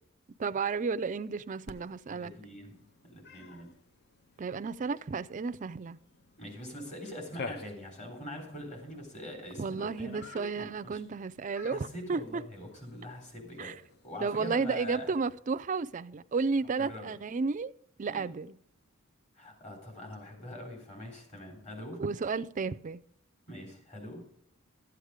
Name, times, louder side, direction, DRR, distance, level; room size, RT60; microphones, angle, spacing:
voice 1, 0.4-2.3 4.4-6.0 9.6-12.4 13.6-13.7 14.2-17.7 18.0-18.6 22.0-23.0, right 4 dB, 35° right, 0.4 m, -32 dB
Cat, 1.7-15.3, left 3 dB, 50° left, 0.6 m, -51 dB
voice 2, 2.1-2.8 3.0-3.7 6.4-11.0 11.7-13.7 14.0-15.1 16.8-17.1 18.1-18.3 19.3-22.0 23.5-24.2, left 1 dB, 35° left, 3.5 m, -43 dB
13.0 x 8.1 x 5.0 m
head